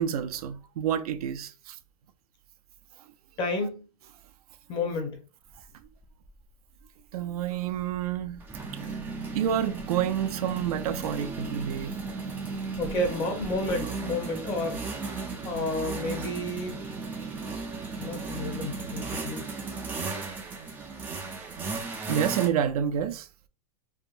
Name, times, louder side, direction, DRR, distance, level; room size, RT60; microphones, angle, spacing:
voice 1, 0.0-1.5 7.1-8.4 9.3-11.9 21.8-23.2, right 9 dB, 80° right, 0.4 m, -28 dB
voice 2, 3.4-3.9 4.7-5.2 12.8-14.8 15.4-16.8 18.0-19.5, left 2 dB, 25° left, 0.8 m, -31 dB
sound 1, 5.6-5.7 6.0-6.3 7.5-22.5, right 4 dB, 10° right, 0.3 m, -35 dB
3.4 x 2.1 x 2.4 m
supercardioid pair, 150°, 19 cm